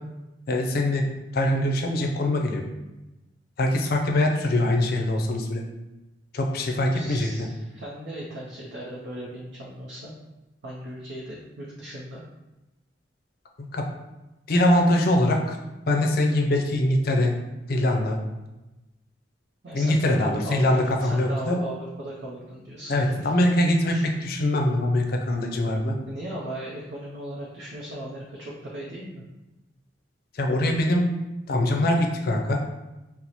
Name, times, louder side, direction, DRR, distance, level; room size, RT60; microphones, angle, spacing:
voice 1, 0.5-1.1 1.3-2.6 3.6-5.6 6.3-7.5 13.6-13.9 14.5-15.6 15.9-17.4 17.7-18.2 19.7-21.6 22.9-24.0 24.2-26.0 30.3-31.1 31.5-32.6, left 1 dB, 55° left, 2 dB, 0.5 m, -23 dB
voice 2, 6.9-10.1 10.6-12.2 19.6-23.4 23.9-24.0 26.0-29.2, right 1 dB, 65° right, -4 dB, 0.5 m, -37 dB
2.9 x 2.0 x 4.0 m, 1.0 s
head